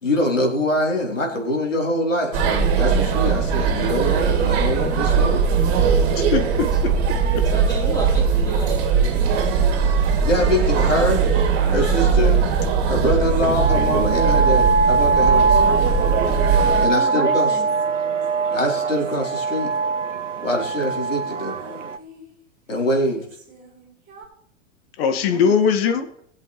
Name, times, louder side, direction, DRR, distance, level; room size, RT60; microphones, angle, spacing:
voice 1, 0.0-5.4 10.2-11.2 11.7-12.4 12.9-15.6 16.8-17.5 18.5-19.7 20.4-21.6 22.7-23.2, left 1 dB, 85° left, 0 dB, 4.0 m, -23 dB
sound 1, 2.3-16.9, right 6 dB, 50° right, 2.8 m, -20 dB
voice 2, 6.2-6.9 7.3-7.5 25.0-26.1, left 6 dB, 55° left, 7 dB, 1.9 m, -20 dB
voice 3, 7.5-8.8 15.6-17.7 25.3-25.6, equal, 10° left, -1 dB, 3.9 m, -33 dB
sound 2, 9.7-10.9 11.6-14.1 15.0-19.6 20.2-20.3 20.6-22.4 23.0-24.3, right 1 dB, 25° right, 4.7 m, -44 dB
sound 3, 13.6-22.0, right 4 dB, 80° right, 1.2 m, -21 dB
21.5 x 7.9 x 3.3 m, 0.67 s
figure-of-eight pair, 100°, 37 cm